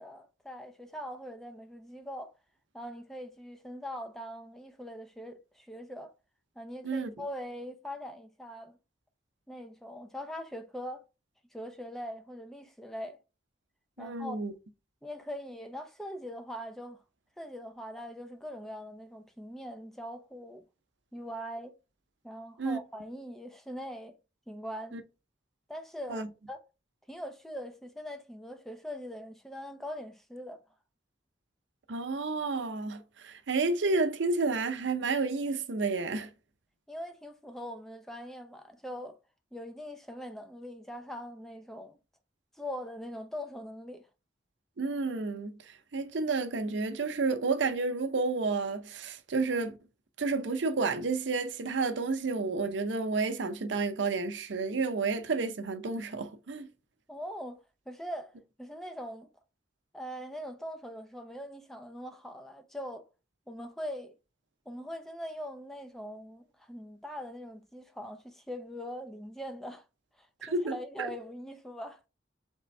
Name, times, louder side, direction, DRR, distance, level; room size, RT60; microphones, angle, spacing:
voice 1, 0.0-2.3 2.7-6.1 6.6-8.8 9.5-11.0 11.5-13.2 14.0-14.4 15.0-17.0 17.4-20.6 21.1-21.7 22.2-24.1 24.5-25.0 25.7-26.6 27.1-30.6 36.9-39.2 39.5-42.0 42.6-44.0 57.1-57.6 57.9-58.3 58.6-59.3 59.9-63.0 63.5-64.1 64.7-69.8 70.2-72.0, equal, ahead, 0.5 m, -42 dB
voice 2, 14.0-14.5 22.6-22.8 24.9-25.0 26.1-26.3 31.9-36.3 44.8-49.8 50.2-56.7 70.4-71.1, right 3 dB, 85° right, 0.6 m, -31 dB
3.6 x 3.3 x 4.1 m
head